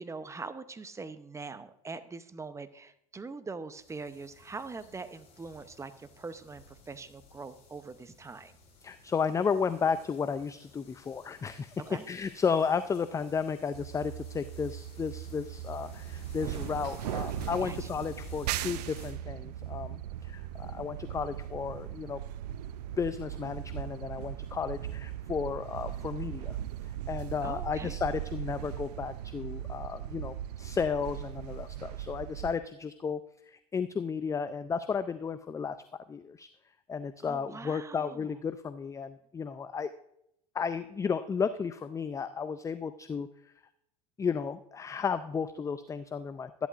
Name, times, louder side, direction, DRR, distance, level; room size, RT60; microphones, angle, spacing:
voice 1, 0.0-8.5 11.9-12.1 17.6-17.9 27.4-28.0 37.2-38.4, right 4 dB, 15° right, 11 dB, 0.7 m, -43 dB
sound 1, 3.7-19.1, left 3 dB, 35° left, 4.6 m, -53 dB
voice 2, 8.8-11.7 12.1-22.2 23.0-26.6 27.1-33.2 33.5-35.8 36.1-36.5 36.9-39.9 40.5-43.3 44.2-46.7, left 6 dB, 15° left, 12 dB, 0.4 m, -33 dB
sound 2, 13.7-32.6, right 11 dB, 80° right, 0.5 m, -39 dB
13.0 x 11.0 x 2.5 m, 0.75 s
hypercardioid pair, 90°, 20 cm